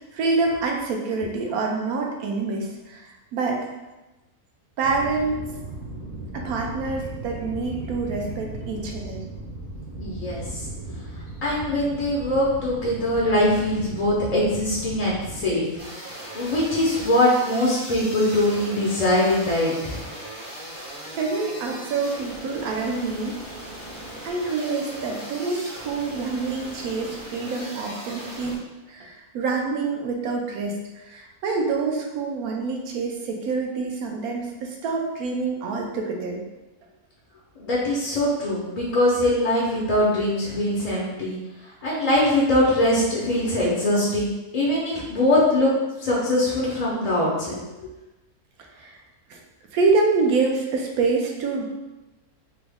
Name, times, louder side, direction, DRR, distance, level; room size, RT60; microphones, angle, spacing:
voice 1, 0.1-3.7 4.8-5.4 6.3-9.2 21.0-23.4 24.2-28.6 28.9-36.4 48.7-48.9 49.3-49.4 49.7-51.7, right 4 dB, 80° right, 1 dB, 1.1 m, -26 dB
sound 1, 4.8-15.5, right 2 dB, 55° right, 1.1 m, -36 dB
voice 2, 10.0-10.7 11.4-15.7 16.3-20.0 37.6-41.4 41.8-45.7 46.0-47.6, left 1 dB, 55° left, -5 dB, 0.4 m, -22 dB
sound 2, 15.8-28.6, right 1 dB, 25° right, 0.4 m, -38 dB
3.6 x 2.0 x 3.4 m, 1.1 s
omnidirectional pair, 1.5 m